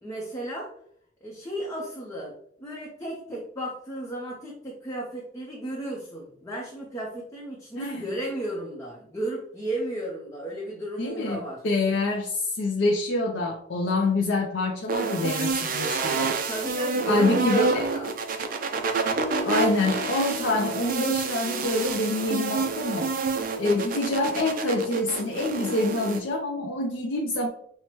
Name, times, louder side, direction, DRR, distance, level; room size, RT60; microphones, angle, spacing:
voice 1, 0.0-0.7 1.2-11.6 16.5-18.1, right 1 dB, 15° left, -3 dB, 0.7 m, -34 dB
voice 2, 11.0-16.4 17.1-17.9 19.4-23.1 23.6-27.5, left 2 dB, 75° left, 1 dB, 0.5 m, -26 dB
sound 1, 14.9-26.2, right 4 dB, 50° right, 0.4 m, -28 dB
5.6 x 2.1 x 3.0 m, 0.66 s
head